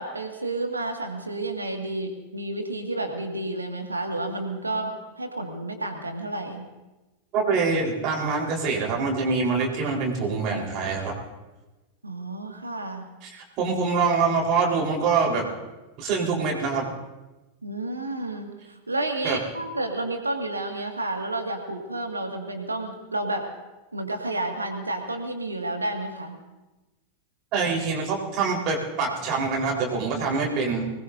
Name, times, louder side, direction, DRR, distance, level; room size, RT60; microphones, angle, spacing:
voice 1, 0.0-6.7 12.0-13.0 17.6-23.5 23.9-26.4, right 2 dB, 80° right, 4 dB, 2.1 m, -31 dB
voice 2, 7.3-11.2 13.3-15.5 16.0-16.8 19.2-19.4 27.5-30.8, right 4 dB, 40° right, -2 dB, 4.3 m, -25 dB
24.0 x 20.0 x 2.7 m, 1.1 s
figure-of-eight pair, 90°, 0 cm